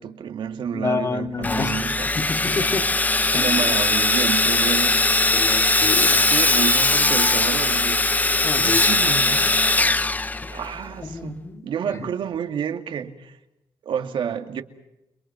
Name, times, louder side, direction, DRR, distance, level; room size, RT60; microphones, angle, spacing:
voice 1, 0.0-2.1 3.3-5.0 6.3-8.3 8.6-9.7 10.5-13.4 13.8-14.6, right 8 dB, 65° right, 2.4 m, -29 dB
voice 2, 0.7-2.8 3.3-3.8 5.3-6.3 8.4-9.0 10.4-10.8 11.0-11.7 12.0-12.1, left 3 dB, 35° left, 2.3 m, -29 dB
Sawing, 1.4-10.9, left 2 dB, 20° left, 0.8 m, -20 dB
30.0 x 22.5 x 5.9 m
cardioid pair, 80°, 9 cm